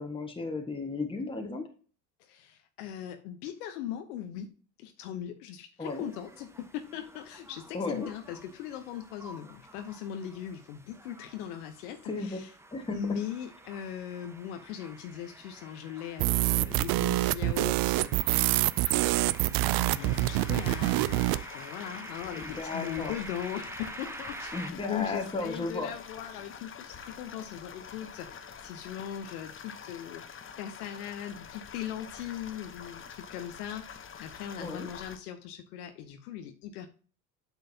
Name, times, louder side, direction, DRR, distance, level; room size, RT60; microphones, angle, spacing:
voice 1, 0.0-1.7 5.8-6.1 7.7-8.1 12.0-12.4 12.7-13.0 22.3-23.1 24.5-25.9 34.6-34.9, left 3 dB, 10° left, 3 dB, 1.5 m, -34 dB
voice 2, 2.2-4.5 4.8-12.5 12.9-19.0 19.2-36.9, left 10 dB, 75° left, 7 dB, 0.9 m, -40 dB
sound 1, 5.8-24.7, right 2 dB, 5° right, 0.8 m, -48 dB
sound 2, 16.2-21.4, right 18 dB, 50° right, 0.5 m, -26 dB
sound 3, 19.6-35.2, left 7 dB, 25° left, 0.9 m, -46 dB
8.0 x 6.4 x 2.8 m, 0.40 s
hypercardioid pair, 80°, 45 cm